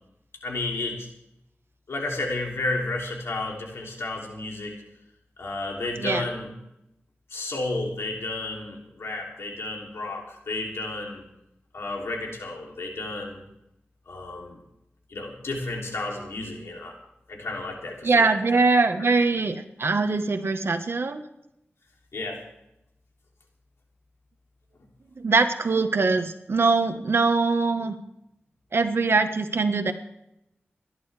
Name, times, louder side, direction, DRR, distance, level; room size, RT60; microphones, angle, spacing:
voice 1, 0.4-1.1 1.9-4.8 5.4-6.5 7.3-11.3 11.7-13.4 14.1-14.6 15.1-16.9 17.3-18.3 22.1-22.4, left 2 dB, 90° left, 0 dB, 3.0 m, -32 dB
voice 2, 18.0-21.2 25.2-28.0 28.7-29.9, right 3 dB, 65° right, 8 dB, 1.3 m, -22 dB
29.5 x 11.0 x 3.4 m, 0.86 s
wide cardioid pair, 70°, 4 cm